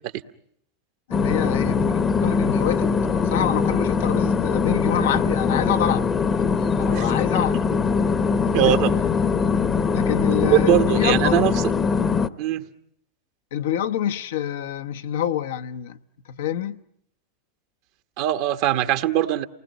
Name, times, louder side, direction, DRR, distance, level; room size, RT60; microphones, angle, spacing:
voice 1, 1.1-6.5 6.8-7.6 8.4-8.8 9.9-11.4 13.5-16.0 16.2-16.8, left 10 dB, 70° left, 1.0 m, -27 dB
sound 1, 1.1-12.3, left 5 dB, 25° left, 1.0 m, -22 dB
voice 2, 8.5-8.9 10.4-11.6 12.4-12.6 18.2-19.4, right 13 dB, 60° right, 1.2 m, -21 dB
28.5 x 19.5 x 9.3 m
hypercardioid pair, 95°, 0 cm